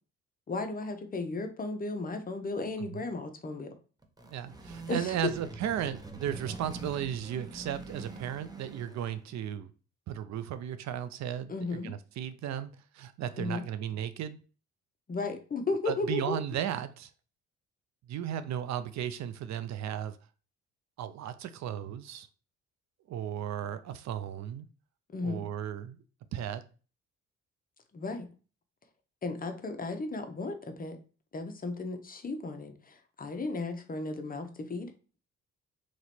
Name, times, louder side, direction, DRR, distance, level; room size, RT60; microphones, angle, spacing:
voice 1, 0.5-3.7 4.9-5.1 11.5-11.9 13.4-13.6 15.1-16.4 25.1-25.4 27.9-28.3 29.2-31.0 31.3-34.9, left 3 dB, 30° left, 6 dB, 0.8 m, -35 dB
sound 1, 4.0-9.3, right 3 dB, 15° right, 0.7 m, -44 dB
voice 2, 4.2-9.7 10.1-14.4 15.9-17.1 18.1-20.2 21.0-22.3 23.1-24.7 25.2-26.0 26.3-26.6, right 10 dB, 65° right, 12 dB, 0.5 m, -35 dB
3.0 x 2.9 x 4.2 m, 0.36 s
cardioid pair, 90°, 30 cm